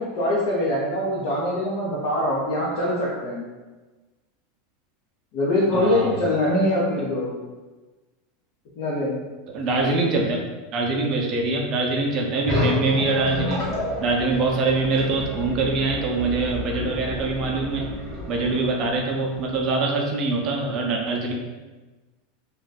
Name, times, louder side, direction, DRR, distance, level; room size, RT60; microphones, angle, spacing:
voice 1, 0.0-3.5 5.3-7.3 8.8-9.2, left 1 dB, 55° left, -7 dB, 0.7 m, -23 dB
voice 2, 5.7-6.2 9.5-10.4 10.7-13.7 14.0-17.9 18.3-21.3, right 3 dB, 35° right, 0 dB, 0.5 m, -24 dB
sound 1, 12.5-19.7, left 1 dB, 10° left, 1.3 m, -30 dB
2.6 x 2.2 x 3.9 m, 1.2 s
supercardioid pair, 155°, 0 cm